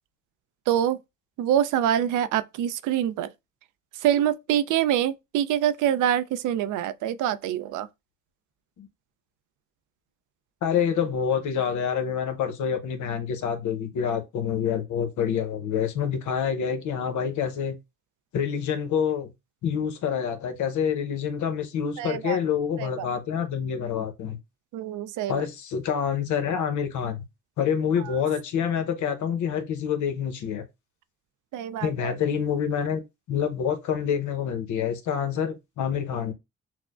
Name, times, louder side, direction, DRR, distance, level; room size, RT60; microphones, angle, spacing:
voice 1, 0.7-1.0 1.4-3.3 4.0-7.9 22.0-22.4 22.8-23.1 24.7-25.5 28.0-28.1 31.5-32.1, right 10 dB, 80° right, 0.4 m, -25 dB
voice 2, 10.6-17.8 18.3-19.3 19.6-24.4 25.3-27.2 27.6-30.6 31.8-33.0 33.3-36.3, left 8 dB, 75° left, 0.8 m, -27 dB
6.1 x 2.0 x 2.4 m
cardioid pair, 90°, 30 cm